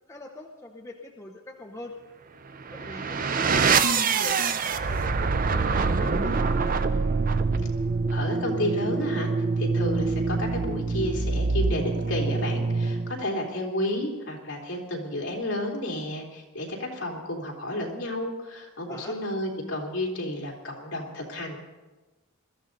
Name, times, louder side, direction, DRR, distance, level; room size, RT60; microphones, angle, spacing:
voice 1, 0.1-2.0 2.7-4.4 4.7-6.8 18.9-19.2, left 1 dB, 15° left, 1 dB, 0.8 m, -43 dB
sound 1, 2.6-13.3, right 4 dB, 40° right, 0.6 m, -25 dB
voice 2, 8.1-9.3 9.6-21.6, left 1 dB, 55° left, -1 dB, 3.2 m, -31 dB
21.0 x 13.5 x 4.0 m, 1.2 s
head